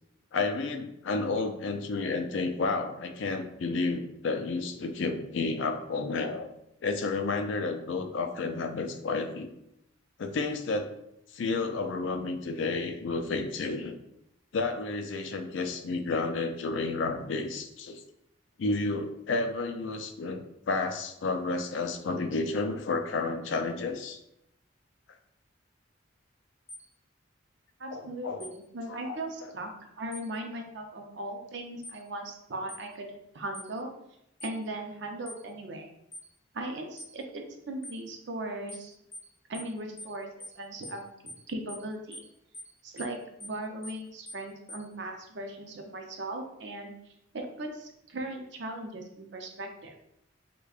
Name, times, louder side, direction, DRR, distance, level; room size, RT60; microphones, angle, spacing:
voice 1, 0.3-6.5 6.8-9.5 10.2-10.9 11.3-14.0 14.5-18.0 18.6-20.4 20.7-24.2 27.9-28.4 28.9-29.5, left 3 dB, 70° left, 6 dB, 0.4 m, -31 dB
sound 1, 26.7-26.9 28.4-28.6 30.1-30.3 31.8-32.0 32.7-32.9 33.5-33.7 34.4-34.6 35.3-35.4 36.1-36.3 37.0-37.1 37.8-38.0 38.7-38.9 39.1-39.3 39.5-39.7 40.0-40.1 40.4-40.6 40.8-41.0 41.3-41.4 41.7-41.9 42.1-42.3 42.5-42.7 43.0-43.1 43.4-43.6 43.8-44.0 44.3-44.4 44.7-44.8, equal, 15° left, 0.4 m, -44 dB
voice 2, 27.8-33.9 34.4-35.9 36.5-38.9 39.5-40.3 40.6-41.0 41.5-42.3 42.8-49.9, right 1 dB, 60° right, 3 dB, 0.5 m, -38 dB
4.9 x 2.2 x 2.4 m, 0.81 s
head